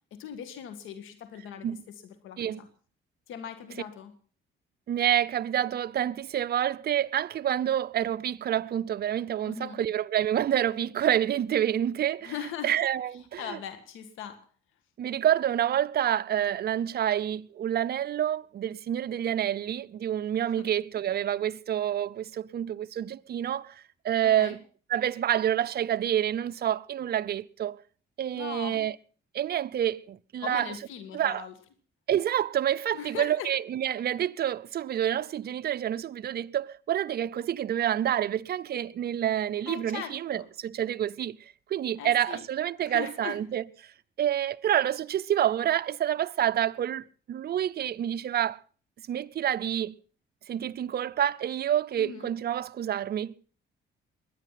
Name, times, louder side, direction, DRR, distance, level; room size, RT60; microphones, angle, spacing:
voice 1, 0.1-2.7 3.3-4.1 9.4-9.8 12.2-12.7 13.4-14.4 20.6-20.7 24.2-24.6 28.3-28.8 30.4-31.5 32.9-33.5 39.7-40.5 42.0-42.5 42.8-43.4 52.0-52.3, left 8 dB, 90° left, 1.8 m, -40 dB
voice 2, 4.9-12.3 12.6-13.6 15.0-24.6 24.9-27.8 28.2-29.0 29.3-30.7 31.1-31.4 32.1-43.9 44.2-48.6 49.1-50.0 50.5-53.3, right 10 dB, 50° right, 0.6 m, -28 dB
21.5 x 10.0 x 5.8 m
cardioid pair, 90°, 20 cm